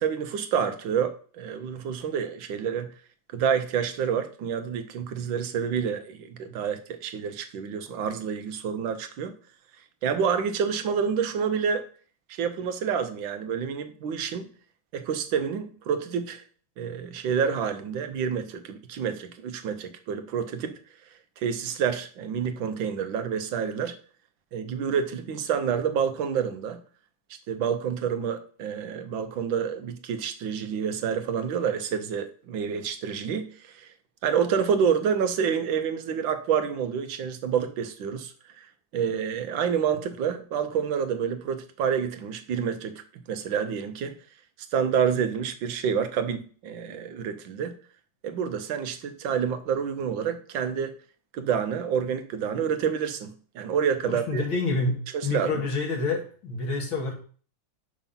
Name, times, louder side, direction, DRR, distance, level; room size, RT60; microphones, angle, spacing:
voice 1, 0.0-2.9 3.3-9.3 10.0-11.9 12.4-14.5 14.9-16.4 16.8-20.8 21.4-24.0 24.5-26.8 27.5-33.9 34.2-38.7 38.9-43.0 43.3-44.1 44.7-47.7 48.2-50.9 51.3-54.4 55.1-55.6, right 7 dB, 75° right, 1.5 m, -28 dB
voice 2, 54.1-55.0 55.2-57.1, left 3 dB, 90° left, 2.6 m, -28 dB
5.9 x 5.3 x 5.7 m
omnidirectional pair, 2.1 m